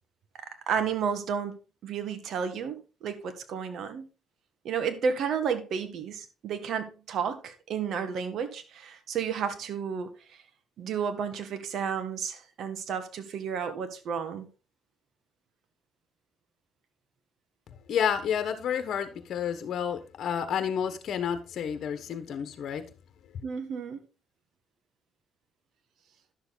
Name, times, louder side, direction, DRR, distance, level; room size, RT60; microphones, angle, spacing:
voice 1, 0.4-1.6 1.8-4.1 4.6-10.4 10.8-14.5 23.4-24.0, right 6 dB, 70° right, 1.7 m, -32 dB
voice 2, 17.9-22.8, left 8 dB, 65° left, 1.3 m, -30 dB
11.0 x 7.0 x 4.0 m
cardioid pair, 90°, 0 cm